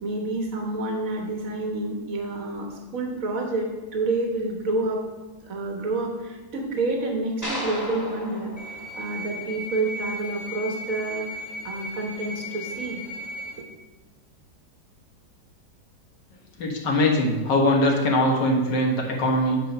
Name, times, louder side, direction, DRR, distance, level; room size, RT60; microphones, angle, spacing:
voice 1, 0.0-2.7 2.9-5.0 5.4-8.5 8.9-11.2 11.6-13.0, right 2 dB, 50° right, 1 dB, 1.6 m, -28 dB
sound 1, 7.4-9.8, left 1 dB, 10° left, 1.6 m, -35 dB
sound 2, 8.6-13.6, left 1 dB, 40° left, 1.0 m, -36 dB
voice 2, 16.6-19.6, left 1 dB, 75° left, 0 dB, 1.9 m, -21 dB
9.0 x 4.7 x 5.3 m, 1.2 s
omnidirectional pair, 1.9 m